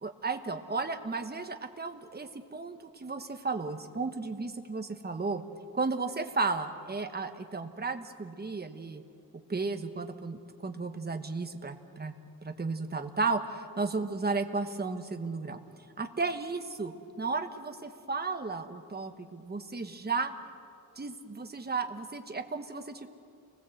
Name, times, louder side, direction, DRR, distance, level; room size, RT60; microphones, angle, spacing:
voice 1, 0.0-5.4 5.7-9.0 9.5-12.1 12.4-15.6 16.0-16.9 17.2-20.3 21.0-23.1, right 4 dB, 25° right, 6 dB, 1.2 m, -34 dB
29.0 x 20.5 x 7.9 m, 2.5 s
wide cardioid pair, 155°, 37 cm